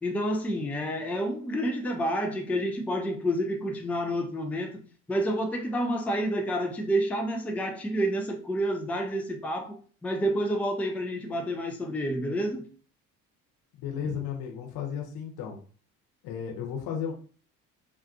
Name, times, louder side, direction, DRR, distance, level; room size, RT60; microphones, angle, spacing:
voice 1, 0.0-4.7 5.1-12.7 14.0-14.2, equal, 5° left, 0.3 m, -29 dB
voice 2, 13.8-15.6 16.2-17.1, left 8 dB, 55° left, 1.0 m, -34 dB
2.3 x 2.3 x 2.5 m
figure-of-eight pair, 50°, 45 cm